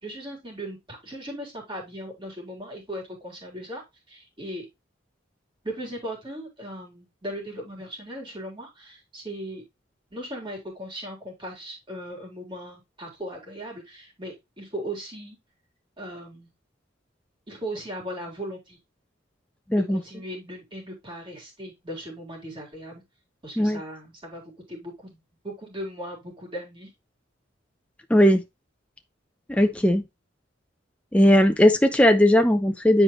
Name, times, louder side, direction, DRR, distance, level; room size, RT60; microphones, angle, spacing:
voice 1, 0.0-4.7 5.6-9.6 10.1-15.4 16.0-16.5 17.5-18.8 19.7-23.0 23.4-24.4 24.7-25.2 25.4-26.9, right 1 dB, 25° right, 3.6 m, -38 dB
voice 2, 28.1-28.4 29.5-30.0 31.1-33.0, left 1 dB, 5° left, 0.6 m, -18 dB
10.5 x 4.6 x 3.1 m
head